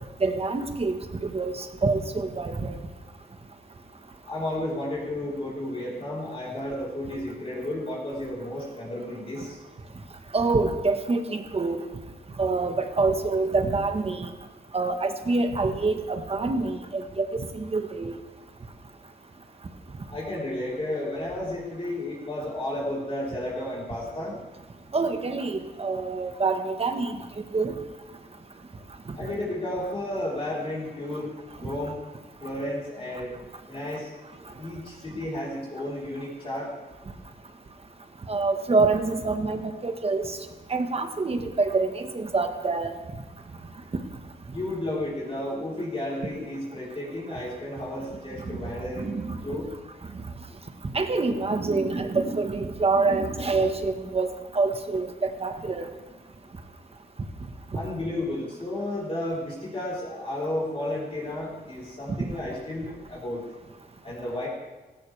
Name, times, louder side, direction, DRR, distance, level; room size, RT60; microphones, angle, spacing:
voice 1, 0.2-2.8 10.3-11.8 12.4-14.3 14.7-18.1 24.9-27.2 27.5-27.7 38.3-40.4 40.7-42.9 48.5-48.6 49.0-49.4 50.9-54.3 54.5-55.9, right 3 dB, 35° right, 7 dB, 1.3 m, -26 dB
voice 2, 4.3-9.6 20.1-24.3 29.1-32.0 32.4-33.4 33.7-34.1 34.5-36.7 44.5-49.1 49.4-49.7 57.7-63.4 64.0-64.5, left 1 dB, 30° left, -7 dB, 4.0 m, -32 dB
16.5 x 16.5 x 3.4 m, 1.2 s
cardioid pair, 105°, 18 cm